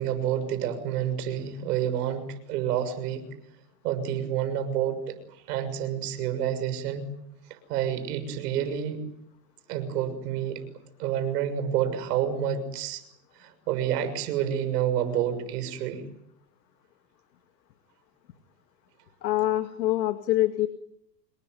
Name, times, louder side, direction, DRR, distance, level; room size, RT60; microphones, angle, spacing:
voice 1, 0.0-3.2 3.8-5.0 5.5-7.1 7.7-9.0 9.7-10.6 11.0-13.0 13.4-16.0, right 9 dB, 65° right, 10 dB, 6.7 m, -28 dB
voice 2, 19.2-20.7, left 14 dB, 80° left, 9 dB, 2.2 m, -25 dB
27.5 x 22.0 x 9.4 m, 0.77 s
hypercardioid pair, 125°, 49 cm